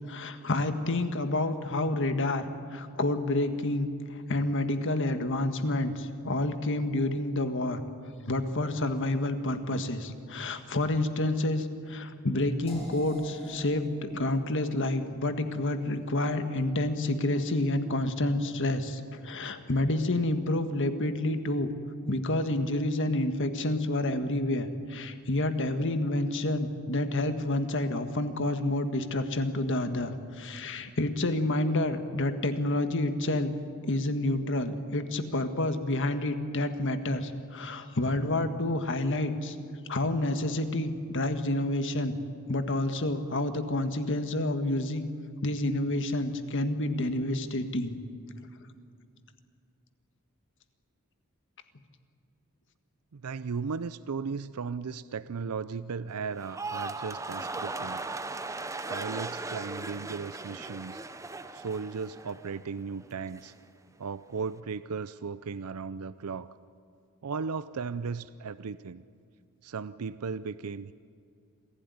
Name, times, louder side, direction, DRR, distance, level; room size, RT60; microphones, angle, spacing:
voice 1, 0.1-7.8 8.3-21.7 22.1-33.5 33.8-39.6 39.9-42.2 42.5-45.0 45.4-48.0, left 1 dB, 55° left, 8 dB, 1.6 m, -29 dB
sound 1, 12.7-18.6, equal, 25° left, 5.6 m, -49 dB
voice 2, 53.1-58.0 58.9-61.0 61.5-63.5 64.0-66.5 67.2-69.0 69.6-70.9, right 5 dB, 80° right, 15 dB, 0.5 m, -36 dB
sound 2, 56.4-62.7 63.0-63.5, right 3 dB, 15° right, 0.7 m, -38 dB
26.5 x 16.0 x 9.5 m, 2.3 s
head